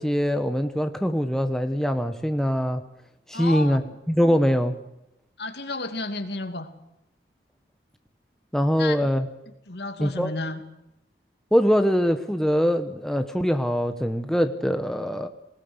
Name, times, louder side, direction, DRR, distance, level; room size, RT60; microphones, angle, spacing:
voice 1, 0.0-2.8 3.3-3.8 4.1-4.8 8.5-9.3 10.0-10.3 11.5-15.3, equal, 5° left, 7 dB, 1.1 m, -23 dB
voice 2, 3.3-3.9 5.4-6.7 8.7-9.0 9.7-10.6, left 2 dB, 70° left, 7 dB, 2.6 m, -32 dB
21.0 x 19.5 x 8.1 m, 0.86 s
head